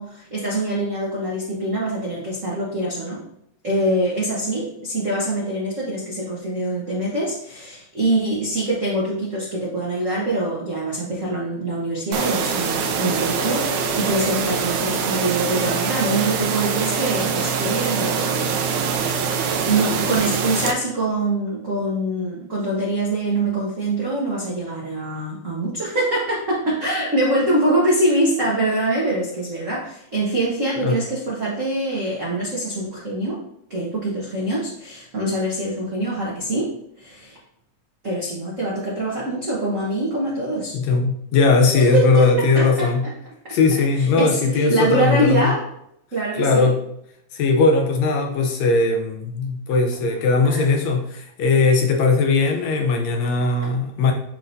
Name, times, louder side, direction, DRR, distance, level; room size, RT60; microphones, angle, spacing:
voice 1, 0.0-3.2 3.6-19.0 19.6-33.4 33.7-36.7 37.0-37.4 38.0-40.8 41.8-43.1 43.4-43.6 43.9-45.6 46.1-46.7 50.4-50.7, right 1 dB, 65° right, -5 dB, 0.7 m, -24 dB
sound 1, 12.1-20.7, right 6 dB, 80° right, 2.1 m, -24 dB
voice 2, 40.7-43.0 43.5-45.5 46.3-46.8 47.3-54.1, left 4 dB, 75° left, 3 dB, 1.7 m, -19 dB
10.0 x 3.6 x 2.6 m, 0.75 s
omnidirectional pair, 3.4 m